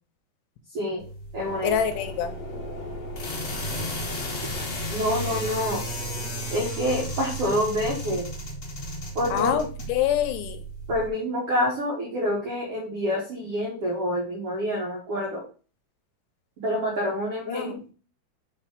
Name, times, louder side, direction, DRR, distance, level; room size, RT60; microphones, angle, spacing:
voice 1, 0.7-1.0 1.3-1.8 4.9-5.8 6.5-8.3 9.1-9.6 10.9-15.4 16.6-17.9, equal, 80° right, -3 dB, 1.3 m, -27 dB
sound 1, 1.0-11.1, equal, 45° left, 1.5 m, -34 dB
sound 2, 1.4-6.7, left 4 dB, 60° left, 1.6 m, -40 dB
voice 2, 1.6-2.3 9.3-10.6 17.5-17.7, left 10 dB, 80° left, 8 dB, 2.7 m, -26 dB
6.1 x 4.1 x 4.9 m, 0.37 s
omnidirectional pair, 5.1 m